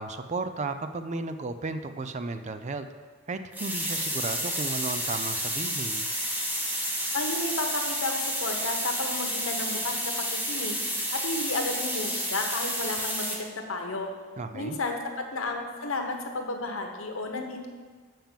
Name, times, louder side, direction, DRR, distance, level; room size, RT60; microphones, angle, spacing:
voice 1, 0.0-2.9 3.3-6.1 14.4-14.8, right 3 dB, 35° right, 9 dB, 0.4 m, -34 dB
sound 1, 3.5-13.4, equal, 10° right, 1.1 m, -30 dB
voice 2, 7.1-10.8 11.1-14.1 14.5-17.7, left 2 dB, 70° left, 3 dB, 1.2 m, -32 dB
7.3 x 5.5 x 7.2 m, 1.5 s
head